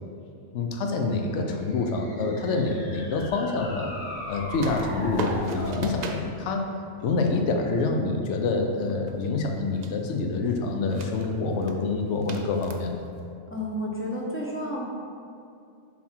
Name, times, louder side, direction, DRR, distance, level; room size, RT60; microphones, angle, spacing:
voice 1, 0.5-3.9 4.3-6.7 7.0-13.0, left 3 dB, 70° left, 3 dB, 1.0 m, -27 dB
sound 1, 1.5-5.9, left 1 dB, 45° left, 1.4 m, -38 dB
sound 2, 4.6-6.3 8.6-9.6 9.8-10.1 10.8-11.3 11.6-11.7 12.2-13.2, right 3 dB, 55° right, 0.5 m, -36 dB
voice 2, 13.5-14.8, equal, 10° left, -4 dB, 0.9 m, -31 dB
7.2 x 4.2 x 4.5 m, 2.5 s
omnidirectional pair, 1.3 m